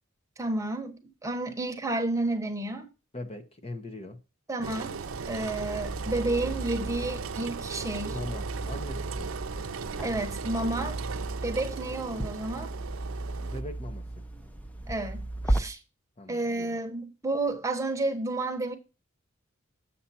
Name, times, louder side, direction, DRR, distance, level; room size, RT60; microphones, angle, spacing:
voice 1, 0.4-2.9 4.5-5.0 5.3-8.2 10.0-11.0 11.4-12.7 14.9-15.8 16.3-18.8, right 2 dB, 15° right, 1.1 m, -31 dB
voice 2, 3.1-4.2 8.1-9.3 13.4-14.2 16.2-16.8, left 1 dB, 30° left, 1.0 m, -40 dB
Engine, 4.6-13.6, right 5 dB, 90° right, 0.6 m, -38 dB
sound 1, 5.0-15.6, right 1 dB, 10° left, 0.8 m, -35 dB
7.3 x 7.2 x 4.2 m
head